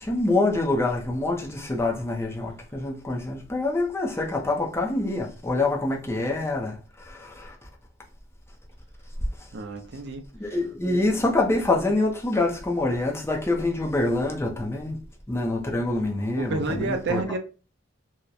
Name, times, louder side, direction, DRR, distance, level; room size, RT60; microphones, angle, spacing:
voice 1, 0.0-6.8 7.0-7.5 10.3-15.0 15.3-17.2, left 2 dB, 15° left, 0.5 m, -26 dB
voice 2, 9.5-10.2 16.4-17.4, right 3 dB, 60° right, 0.5 m, -29 dB
2.8 x 2.1 x 2.3 m
head